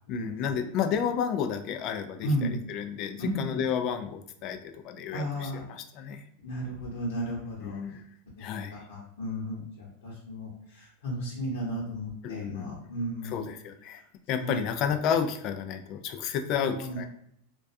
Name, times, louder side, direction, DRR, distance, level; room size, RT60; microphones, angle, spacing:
voice 1, 0.1-6.2 7.6-8.0 8.4-8.7 12.2-12.9 13.2-14.0 14.3-17.1, left 7 dB, 45° left, 7 dB, 0.3 m, -31 dB
voice 2, 2.2-2.6 3.3-3.6 5.1-5.6 6.4-7.8 8.9-10.5 11.0-13.4 14.4-14.6 16.5-17.0, equal, 85° left, -6 dB, 0.9 m, -33 dB
2.3 x 2.3 x 2.6 m, 0.71 s
supercardioid pair, 135°, 0 cm